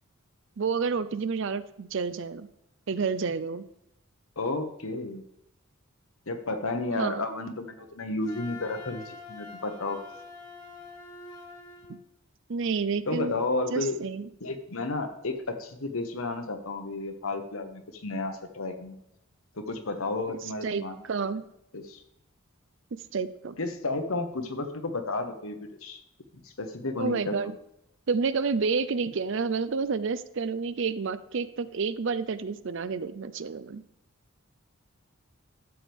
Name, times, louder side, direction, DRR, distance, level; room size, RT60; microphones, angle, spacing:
voice 1, 0.6-2.5 2.9-3.6 6.9-7.3 11.9-12.0 12.5-13.4 13.7-14.3 20.3-21.4 23.1-23.6 27.0-27.5 28.1-33.8, right 5 dB, 60° right, 14 dB, 0.5 m, -30 dB
voice 2, 4.4-5.2 6.3-10.0 13.0-14.0 14.4-19.0 19.6-21.2 21.7-22.0 23.6-26.0 26.4-27.5, left 2 dB, 75° left, 6 dB, 1.2 m, -32 dB
Wind instrument woodwind instrument, 8.2-11.9, left 4 dB, 20° left, 2.0 m, -45 dB
12.0 x 7.8 x 3.6 m, 0.81 s
head